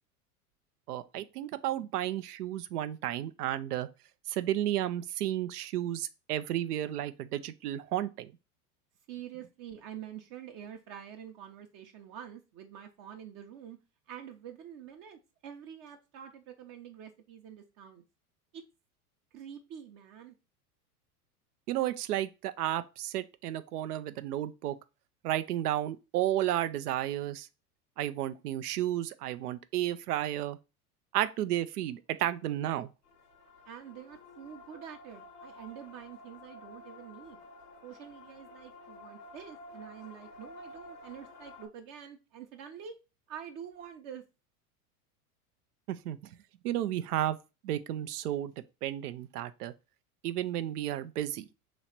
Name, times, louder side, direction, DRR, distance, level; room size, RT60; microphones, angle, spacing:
voice 1, 0.9-3.9 4.3-8.3 21.7-24.8 25.2-27.5 28.0-30.6 31.1-32.9 45.9-46.2 46.6-47.4 47.6-48.5 48.8-49.7 50.2-51.5, right 12 dB, 80° right, 0.6 m, -32 dB
voice 2, 9.1-13.8 14.1-18.0 18.5-18.6 19.3-20.3 33.7-37.4 37.8-43.0 43.3-44.2, right 9 dB, 45° right, 0.8 m, -47 dB
sound 1, 33.1-41.7, left 2 dB, 90° left, 1.1 m, -51 dB
3.1 x 3.0 x 4.2 m
hypercardioid pair, 95°, 46 cm